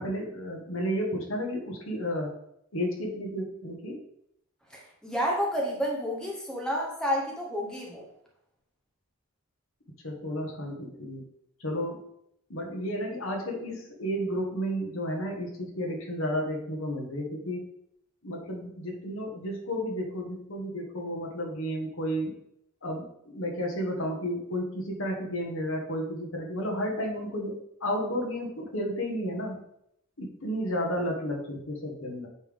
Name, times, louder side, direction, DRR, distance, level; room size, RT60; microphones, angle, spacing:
voice 1, 0.0-2.3 2.7-4.0 10.0-11.2 11.6-12.0 12.5-17.7 18.2-22.3 22.8-29.6 30.2-32.3, equal, 65° left, 1 dB, 1.4 m, -32 dB
voice 2, 4.7-8.1, equal, 5° left, -2 dB, 0.9 m, -30 dB
8.2 x 3.5 x 3.5 m, 0.74 s
head